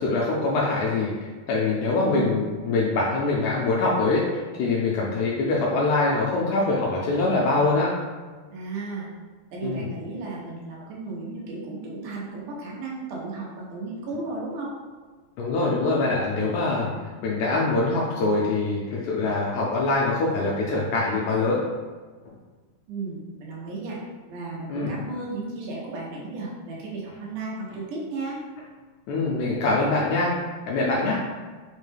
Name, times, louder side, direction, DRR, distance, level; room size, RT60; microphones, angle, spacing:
voice 1, 0.0-4.2 4.6-7.9 9.6-9.9 15.4-16.9 17.2-21.6 24.7-25.0 29.1-30.3 30.7-31.2, left 3 dB, 80° left, -4 dB, 1.7 m, -24 dB
voice 2, 2.0-2.4 8.5-9.1 9.5-14.8 22.9-24.0 24.3-28.4, right 3 dB, 90° right, -4 dB, 2.4 m, -34 dB
5.3 x 2.1 x 3.2 m, 1.4 s
omnidirectional pair, 3.5 m